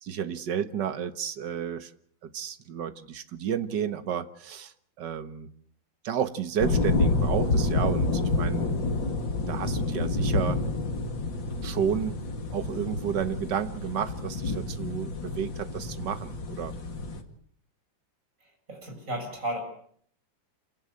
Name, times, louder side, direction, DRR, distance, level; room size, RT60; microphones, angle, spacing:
voice 1, 0.0-1.9 2.2-5.5 6.0-8.7 9.5-10.6 11.6-12.2 12.5-16.7, right 8 dB, 65° right, 11 dB, 1.9 m, -31 dB
sound 1, 6.6-17.2, left 3 dB, 70° left, 2.9 m, -28 dB
voice 2, 18.7-19.6, right 1 dB, 40° right, 2 dB, 8.1 m, -33 dB
27.5 x 18.0 x 8.7 m, 0.62 s
omnidirectional pair, 2.1 m